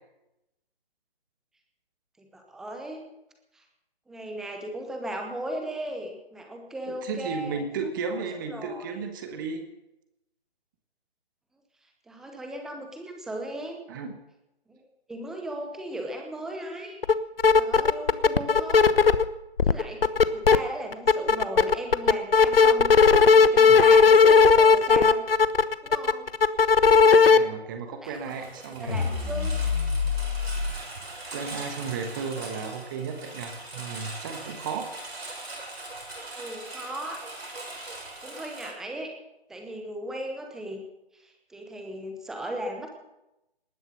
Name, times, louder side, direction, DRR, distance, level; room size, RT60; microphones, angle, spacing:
voice 1, 2.2-3.0 3.5-3.6 4.1-7.6 8.1-8.2 8.5-8.9 12.1-13.8 14.7-14.8 15.1-17.0 17.6-18.9 19.6-25.3 25.8-26.3 28.0-28.5 28.8-29.5 36.3-37.2 38.2-39.1 39.5-40.8 41.1-42.9, right 1 dB, ahead, 3 dB, 0.8 m, -37 dB
voice 2, 6.9-9.6 13.9-14.1 23.7-23.8 27.2-29.0 31.3-34.9, right 5 dB, 20° right, 6 dB, 1.4 m, -34 dB
sound 1, 17.0-17.1 17.4-19.2 19.6-20.6 20.9-27.4, left 5 dB, 65° left, 1.0 m, -16 dB
Engine, 28.1-38.7, right 2 dB, 75° right, 6.4 m, -41 dB
High Bass, 28.9-30.7, left 5 dB, 40° left, 4.8 m, -27 dB
19.0 x 11.0 x 6.7 m, 0.91 s
figure-of-eight pair, 150°, 31 cm